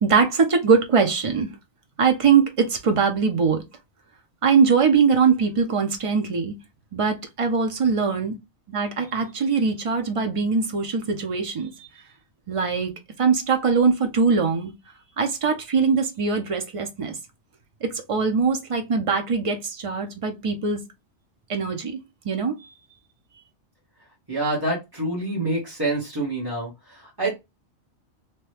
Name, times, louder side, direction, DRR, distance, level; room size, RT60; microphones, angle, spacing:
voice 1, 0.0-1.5 2.0-3.6 4.4-6.5 6.9-8.4 8.7-11.9 12.5-12.9 13.2-14.7 15.2-17.1 17.8-20.8 21.5-22.0 22.2-22.5, right 5 dB, 35° right, 0.6 m, -22 dB
voice 2, 24.3-27.3, right 2 dB, 20° right, 1.0 m, -27 dB
2.9 x 2.2 x 3.2 m
omnidirectional pair, 1.2 m